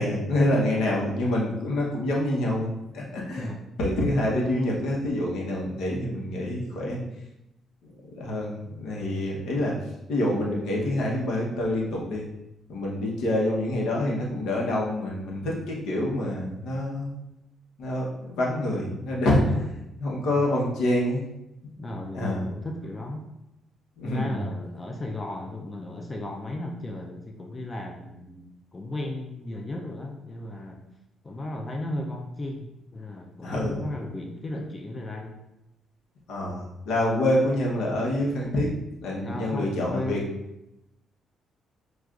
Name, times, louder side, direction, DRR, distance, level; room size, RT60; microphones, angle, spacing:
voice 1, 0.0-3.5 3.8-7.0 8.1-9.8 10.1-12.2 12.7-17.1 17.8-19.6 20.0-21.2 22.1-22.5 24.0-24.4 33.4-33.8 36.3-38.7 39.0-40.2, left 1 dB, 80° left, -2 dB, 1.0 m, -26 dB
voice 2, 3.4-3.7 19.5-19.6 19.9-20.1 20.4-20.5 21.8-23.3 24.0-28.5 28.7-30.8 31.2-35.4 39.2-40.3, left 1 dB, 25° left, 2 dB, 0.5 m, -35 dB
6.2 x 2.4 x 2.5 m, 0.89 s
cardioid pair, 90°, 0 cm